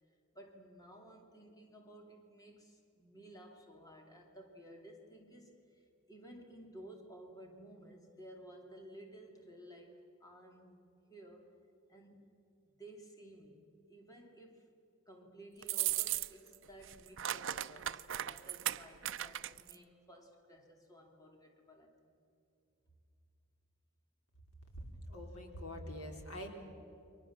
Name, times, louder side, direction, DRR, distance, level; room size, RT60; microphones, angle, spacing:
voice 1, 0.3-10.8 11.1-11.6 11.9-14.7 15.1-22.1, right 1 dB, 15° left, 2 dB, 2.8 m, -55 dB
sound 1, 15.6-16.6 16.8-19.8, right 13 dB, 60° right, 0.6 m, -37 dB
voice 2, 24.7-26.5, equal, 90° left, 3 dB, 3.8 m, -45 dB
29.5 x 23.5 x 7.3 m, 2.7 s
head